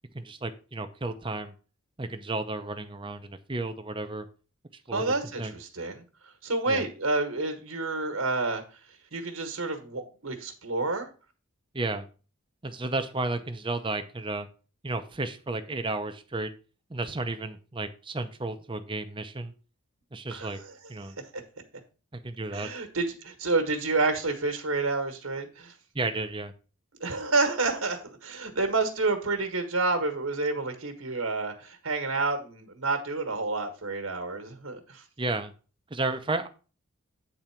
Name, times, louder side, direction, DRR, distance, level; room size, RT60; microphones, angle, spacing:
voice 1, 0.1-1.5 2.0-4.3 4.9-5.0 5.4-5.5 6.7-6.9 11.7-12.1 12.6-14.5 14.8-16.5 16.9-19.5 20.1-20.6 20.9-21.2 22.1-22.7 25.9-26.5 35.2-35.5 35.9-36.5, right 2 dB, 25° right, 8 dB, 0.7 m, -32 dB
voice 2, 4.9-6.0 6.4-8.8 9.1-11.1 20.3-20.7 21.0-21.4 22.5-25.7 27.0-35.0, right 3 dB, 75° right, 5 dB, 1.5 m, -29 dB
9.0 x 4.0 x 5.8 m, 0.35 s
head